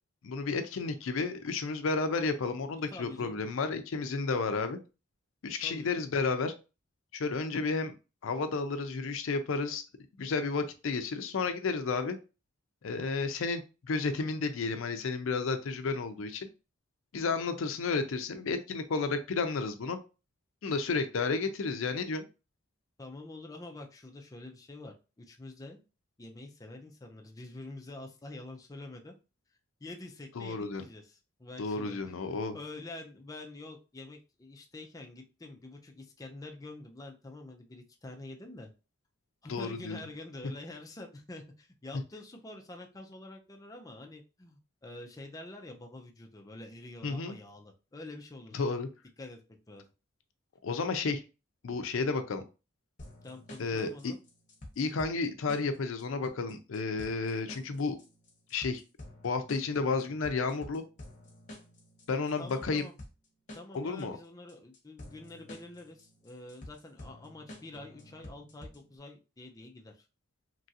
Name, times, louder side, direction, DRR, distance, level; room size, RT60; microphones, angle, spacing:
voice 1, 0.2-4.8 5.4-6.5 7.1-7.9 8.2-9.8 10.2-12.2 12.8-13.6 13.9-16.5 17.1-20.0 20.6-22.3 30.4-30.8 31.6-32.6 39.5-40.0 47.0-47.4 48.5-48.9 50.6-51.2 51.6-52.4 53.6-54.1 54.8-58.0 58.5-58.8 59.2-60.8 62.1-62.9 63.7-64.2, left 4 dB, 75° left, 9 dB, 0.5 m, -32 dB
voice 2, 2.9-3.4 5.6-6.0 23.0-25.8 26.2-29.1 29.8-32.2 32.5-38.7 39.4-48.7 49.2-49.4 49.7-49.9 53.2-54.2 62.4-63.0 63.5-70.1, left 2 dB, 15° left, 2 dB, 0.4 m, -47 dB
sound 1, 53.0-69.0, left 1 dB, 40° left, 0.9 m, -50 dB
3.0 x 2.4 x 2.7 m, 0.31 s
head